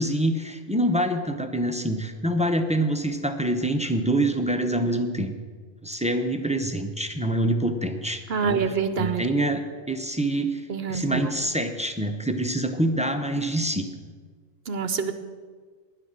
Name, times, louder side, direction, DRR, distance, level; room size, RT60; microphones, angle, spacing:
voice 1, 0.0-5.3 5.8-8.6 9.0-9.6 9.9-13.9, right 1 dB, 5° right, 6 dB, 0.5 m, -26 dB
voice 2, 8.3-9.3 10.7-11.3 14.7-15.1, right 6 dB, 55° right, 10 dB, 0.9 m, -26 dB
10.5 x 10.0 x 7.5 m, 1.5 s
omnidirectional pair, 1.5 m